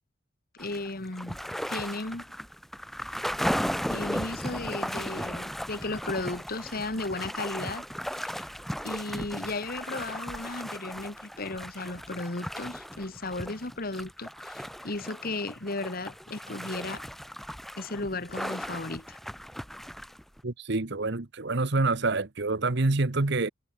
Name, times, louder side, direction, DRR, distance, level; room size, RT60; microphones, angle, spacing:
voice 1, 0.6-1.4 1.7-2.2 3.9-7.8 8.2-8.5 8.8-17.0 17.8-19.2, left 2 dB, 50° left, 1.8 m, -35 dB
sound 1, 0.6-20.4, equal, ahead, 7.8 m, -36 dB
voice 2, 20.4-23.5, right 3 dB, 60° right, 1.2 m, -27 dB
head